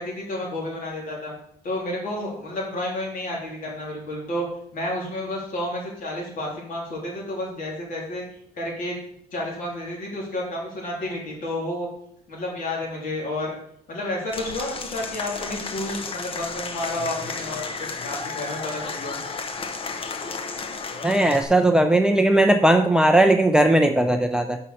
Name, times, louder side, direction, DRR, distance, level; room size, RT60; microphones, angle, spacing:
voice 1, 0.0-1.3 1.6-4.5 4.7-8.2 8.6-9.0 9.3-11.9 12.3-13.6 13.9-19.2, left 1 dB, 55° left, -3 dB, 3.5 m, -31 dB
Applause / Crowd, 14.3-21.4, left 4 dB, 35° left, 0.9 m, -33 dB
voice 2, 21.0-24.6, right 1 dB, 5° right, 6 dB, 0.5 m, -18 dB
5.6 x 5.6 x 6.3 m, 0.71 s
cardioid pair, 110°, 17 cm